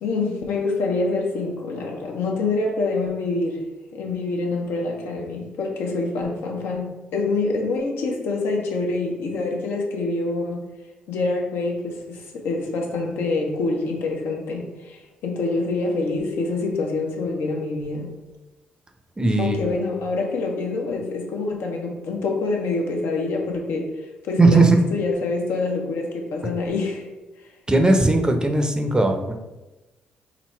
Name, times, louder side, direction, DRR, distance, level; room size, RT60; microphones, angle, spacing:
voice 1, 0.0-3.7 3.9-10.7 11.1-18.1 19.4-23.9 24.2-27.0, left 3 dB, 70° left, 0 dB, 0.7 m, -26 dB
voice 2, 19.2-19.7 24.4-24.8 27.7-29.3, right 2 dB, 20° right, 5 dB, 0.7 m, -18 dB
3.9 x 2.0 x 4.3 m, 1.1 s
hypercardioid pair, 45°, 4 cm